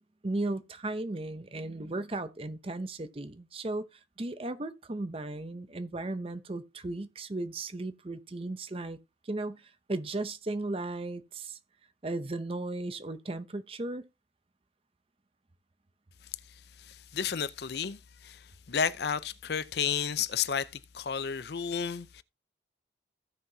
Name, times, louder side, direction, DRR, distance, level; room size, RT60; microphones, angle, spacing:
voice 1, 0.2-9.0 9.3-11.6 12.0-14.0, right 2 dB, 30° right, 0.7 m, -36 dB
voice 2, 16.5-22.2, left 7 dB, 60° left, 0.5 m, -32 dB
16.0 x 5.8 x 2.7 m
head